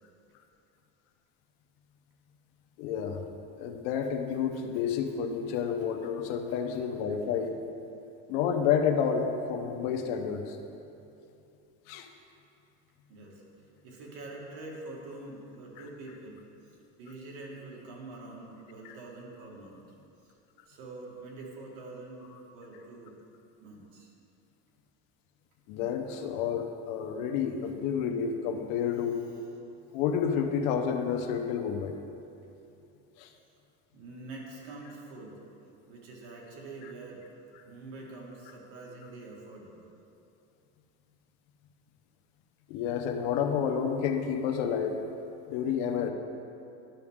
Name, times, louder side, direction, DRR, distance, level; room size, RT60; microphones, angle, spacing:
voice 1, 2.8-3.2 3.6-7.5 8.3-10.6 11.9-12.1 25.7-29.2 29.9-32.0 33.2-33.3 42.7-45.0 45.5-46.1, left 7 dB, 65° left, 4 dB, 0.9 m, -30 dB
voice 2, 13.1-13.4 13.8-16.4 17.0-19.8 20.7-22.2 22.5-23.2 23.6-24.1 27.6-27.7 33.9-35.4 35.9-37.2 37.7-39.9, right 2 dB, 60° right, -3 dB, 2.0 m, -45 dB
11.5 x 6.0 x 3.6 m, 2.7 s
cardioid pair, 160°, 35 cm